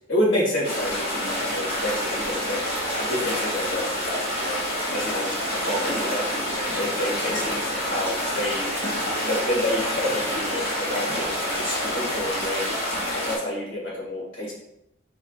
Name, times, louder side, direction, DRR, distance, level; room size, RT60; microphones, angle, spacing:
voice 1, 0.1-2.6 3.0-4.6 4.9-8.7 9.2-12.7 13.1-14.5, left 1 dB, 75° left, -4 dB, 1.7 m, -29 dB
sound 1, 0.6-13.4, equal, 50° left, 1.5 m, -27 dB
4.7 x 4.3 x 2.4 m, 0.81 s
head